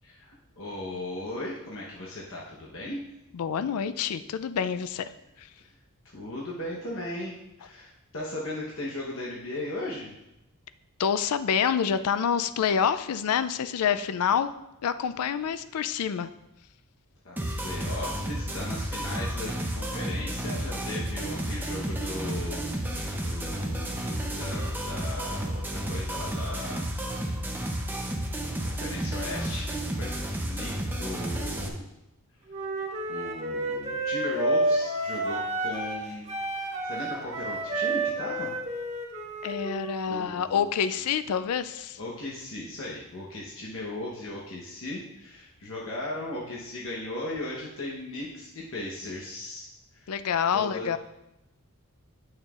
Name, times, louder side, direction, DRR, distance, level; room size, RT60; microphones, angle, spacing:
voice 1, 0.0-3.0 5.6-5.7 6.0-10.1 17.2-27.0 28.6-29.7 30.0-30.1 30.4-30.7 31.0-31.8 33.1-36.3 36.8-38.5 40.1-40.7 42.0-50.1 50.5-51.0, left 1 dB, 60° left, -4 dB, 1.0 m, -37 dB
voice 2, 3.3-5.1 5.4-5.5 11.0-14.5 14.8-16.3 39.4-42.0 50.1-51.0, left 7 dB, 80° left, 13 dB, 0.4 m, -27 dB
sound 1, 17.4-31.7, right 1 dB, 10° right, 0.6 m, -32 dB
Wind instrument woodwind instrument, 32.5-36.0 36.3-40.1, right 2 dB, 30° right, 1.1 m, -30 dB
8.9 x 6.4 x 2.4 m, 0.89 s
head